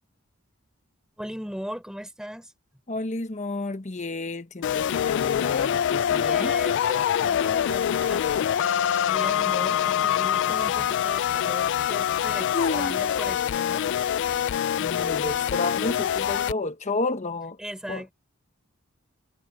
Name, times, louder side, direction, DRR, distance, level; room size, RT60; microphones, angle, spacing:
voice 1, 1.2-2.5 6.0-13.9 17.6-18.1, equal, 5° right, 5.6 m, -38 dB
voice 2, 2.9-6.5 12.5-13.0 14.8-17.6 17.9-18.0, left 2 dB, 35° left, 1.2 m, -31 dB
sound 1, 4.6-16.5, left 9 dB, 60° left, 0.3 m, -25 dB
head